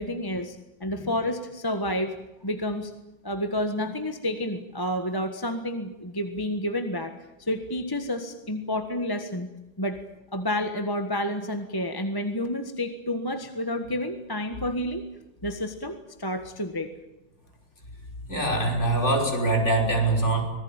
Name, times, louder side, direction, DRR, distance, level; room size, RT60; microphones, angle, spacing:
voice 1, 0.0-2.2 2.4-2.9 3.2-7.1 7.4-9.5 9.8-10.0 10.3-15.0 15.4-16.9, left 1 dB, 15° left, 7 dB, 1.4 m, -30 dB
voice 2, 18.3-20.4, right 2 dB, 35° left, 1 dB, 5.8 m, -23 dB
25.5 x 19.5 x 9.0 m, 0.99 s
omnidirectional pair, 2.0 m